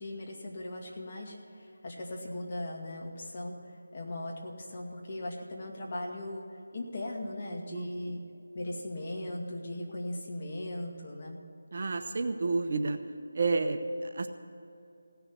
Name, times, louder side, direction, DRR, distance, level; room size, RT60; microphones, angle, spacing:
voice 1, 0.0-8.2 8.5-11.4, left 1 dB, 35° left, -1 dB, 2.3 m, -38 dB
voice 2, 11.7-13.0 13.3-14.3, right 3 dB, 45° right, 7 dB, 0.9 m, -30 dB
16.5 x 7.0 x 9.7 m, 2.6 s
figure-of-eight pair, 165°, 0 cm